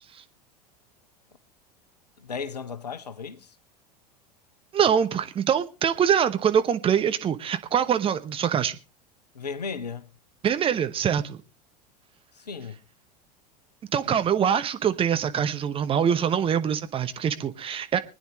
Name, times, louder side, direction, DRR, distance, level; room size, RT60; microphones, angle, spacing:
voice 1, 2.2-3.5 9.3-10.1 12.5-12.8, left 5 dB, 75° left, 0.9 m, -35 dB
voice 2, 4.7-8.8 10.4-11.4 13.9-18.0, right 8 dB, 25° right, 1.1 m, -24 dB
24.5 x 9.7 x 3.1 m
figure-of-eight pair, 80°, 21 cm